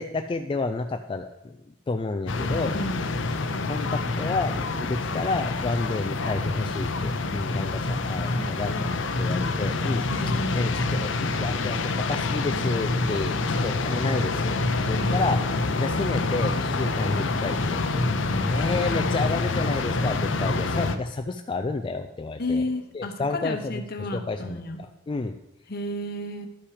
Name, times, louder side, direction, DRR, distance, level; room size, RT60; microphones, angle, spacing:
voice 1, 0.0-1.6 1.9-2.7 3.7-13.4 13.6-14.6 14.9-15.4 15.8-17.8 18.4-22.6 22.9-25.3, left 3 dB, 25° left, 6 dB, 0.4 m, -30 dB
sound 1, 2.3-21.0, left 3 dB, 75° left, 0.7 m, -26 dB
voice 2, 8.2-9.5 10.1-10.8 15.0-15.2 18.2-18.8 22.4-24.8 25.7-26.5, left 1 dB, 55° left, 6 dB, 1.0 m, -33 dB
11.5 x 5.7 x 5.0 m, 0.94 s
head